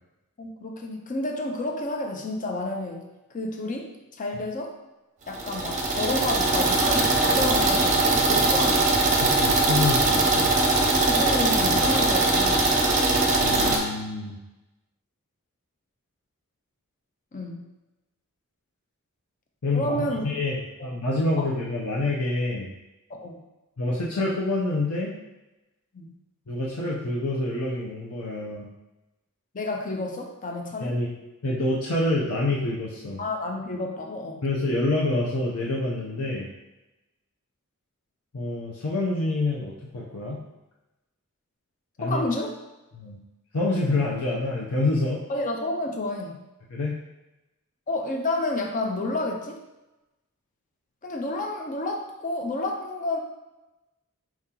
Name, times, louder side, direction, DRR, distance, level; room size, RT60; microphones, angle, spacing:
voice 1, 0.4-3.1 3.3-4.8 5.3-9.1 11.1-12.6 17.3-17.7 19.7-20.2 20.8-20.9 21.4-21.5 23.1-23.4 25.9-26.1 29.5-31.0 33.2-34.4 42.0-42.6 45.3-46.4 47.9-49.6 51.0-53.2, left 2 dB, 35° left, 2 dB, 0.6 m, -30 dB
sound 1, 5.3-13.8, right 2 dB, 35° right, 0.7 m, -21 dB
voice 2, 9.2-10.5 13.3-14.3 19.6-22.7 23.8-25.1 26.5-28.7 30.8-31.1 31.4-33.2 34.4-36.5 38.3-40.4 42.0-42.2 42.9-43.2 43.5-45.2 46.7-47.0, left 2 dB, 75° left, -4 dB, 0.7 m, -27 dB
4.6 x 2.9 x 3.7 m, 1.0 s
head